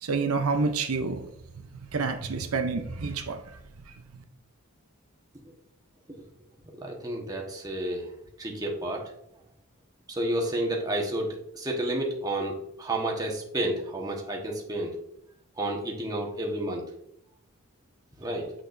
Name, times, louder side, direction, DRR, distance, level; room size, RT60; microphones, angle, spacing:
voice 1, 0.0-1.3 1.9-3.4, right 4 dB, 85° right, 7 dB, 0.6 m, -28 dB
voice 2, 6.8-8.1 8.4-9.0 10.1-15.0 15.6-16.8 18.2-18.5, right 1 dB, 20° right, -1 dB, 1.3 m, -30 dB
7.7 x 6.5 x 2.6 m, 0.75 s
head